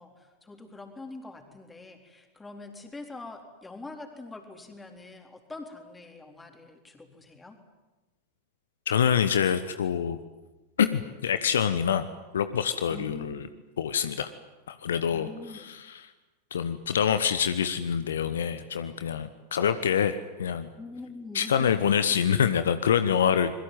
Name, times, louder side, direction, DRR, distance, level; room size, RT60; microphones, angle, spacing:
voice 1, 0.0-7.6 12.9-13.5 15.1-15.7 20.8-22.1, left 3 dB, 10° left, 4 dB, 3.9 m, -44 dB
voice 2, 8.9-10.2 10.8-12.1 12.3-13.4 13.8-14.3 14.7-15.3 15.7-16.0 16.5-20.7 21.3-23.5, left 8 dB, 65° left, 11 dB, 1.1 m, -26 dB
26.0 x 22.0 x 9.3 m, 1.1 s
figure-of-eight pair, 90°, 0 cm